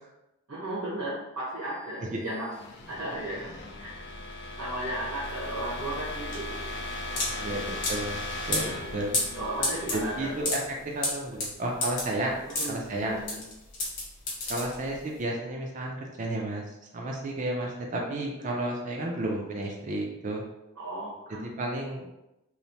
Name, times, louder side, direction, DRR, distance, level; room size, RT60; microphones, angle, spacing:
voice 1, 0.5-2.5 2.9-4.1 4.6-6.6 7.1-7.6 9.3-10.3 12.6-13.4 20.8-21.5, right 1 dB, 90° right, -9 dB, 1.0 m, -35 dB
sound 1, 1.8-11.6, left 1 dB, 55° left, 0.4 m, -38 dB
sound 2, 5.2-15.2, left 2 dB, 40° left, 0.9 m, -32 dB
voice 2, 7.3-7.6 7.9-8.2 8.5-9.2 9.9-10.6 10.8-12.4 12.7-13.2 14.5-16.6 16.9-20.4 21.3-22.1, right 1 dB, 35° right, 0 dB, 0.4 m, -32 dB
3.1 x 2.0 x 2.7 m, 0.90 s
head